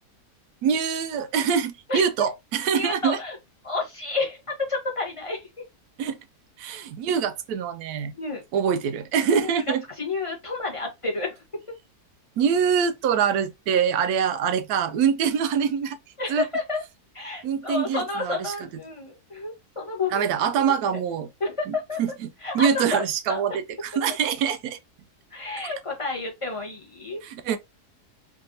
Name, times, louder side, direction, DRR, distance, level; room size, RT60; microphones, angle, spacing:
voice 1, 0.6-3.2 6.0-6.2 6.6-8.1 8.5-9.8 12.4-16.0 16.3-16.4 17.4-18.5 20.1-21.3 21.7-22.3 22.5-24.8 27.2-27.6, right 7 dB, 80° right, 1.1 m, -24 dB
voice 2, 1.9-2.3 2.7-3.4 3.6-5.5 8.1-8.4 9.4-9.6 10.0-11.4 16.2-16.8 17.1-20.3 20.9-21.0 21.4-22.0 22.4-23.0 23.3-23.4 25.3-27.2, left 3 dB, 25° left, 1.0 m, -30 dB
3.6 x 2.5 x 2.6 m
omnidirectional pair, 1.7 m